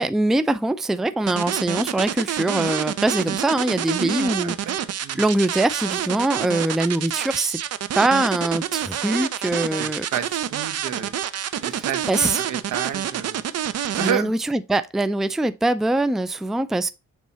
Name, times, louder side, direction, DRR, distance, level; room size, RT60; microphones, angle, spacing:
voice 1, 0.0-4.8 5.1-7.6 8.0-10.1 11.8-12.4 14.0-16.9, right 2 dB, ahead, 0.4 m, -23 dB
sound 1, 1.3-14.1, right 10 dB, 55° right, 0.7 m, -27 dB
voice 2, 4.4-4.7 5.0-5.2 9.7-11.1 11.6-12.1 12.4-13.4 13.9-14.3, right 9 dB, 80° right, 1.1 m, -30 dB
7.1 x 3.7 x 4.2 m
cardioid pair, 90°, 30 cm